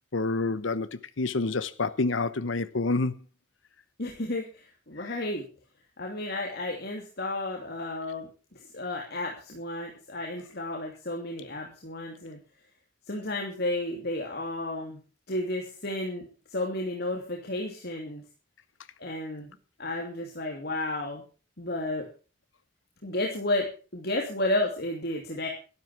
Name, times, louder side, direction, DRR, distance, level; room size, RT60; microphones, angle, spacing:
voice 1, 0.1-3.1 5.0-5.1, left 3 dB, 90° left, 0.9 m, -28 dB
voice 2, 4.0-5.4 6.0-12.4 13.1-15.0 15.3-16.2 16.5-18.2 19.0-21.2 21.6-22.1 23.0-25.5, left 1 dB, 55° left, 2.9 m, -32 dB
12.5 x 12.0 x 6.1 m
head